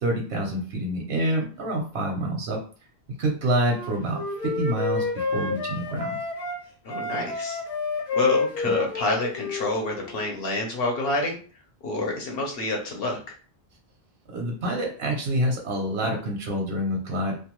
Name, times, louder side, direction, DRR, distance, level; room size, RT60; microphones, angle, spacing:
voice 1, 0.0-2.6 3.2-4.2 4.6-6.2 14.3-17.3, right 1 dB, 80° right, 1 dB, 0.9 m, -27 dB
Wind instrument woodwind instrument, 3.6-6.6 6.9-10.2, left 4 dB, 40° left, 0.9 m, -29 dB
voice 2, 6.8-7.6 8.1-11.4 11.8-13.3, left 2 dB, 70° left, 1 dB, 0.9 m, -28 dB
2.5 x 2.3 x 2.9 m, 0.39 s
omnidirectional pair, 1.1 m